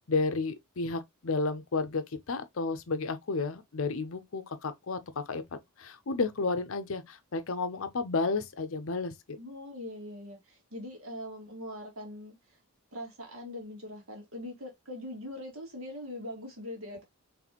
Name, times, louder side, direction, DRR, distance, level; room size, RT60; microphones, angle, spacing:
voice 1, 0.1-9.1, left 3 dB, 60° left, 0.6 m, -32 dB
voice 2, 9.4-12.6 12.9-17.0, left 1 dB, 65° right, 2.0 m, -42 dB
4.1 x 3.3 x 2.9 m
head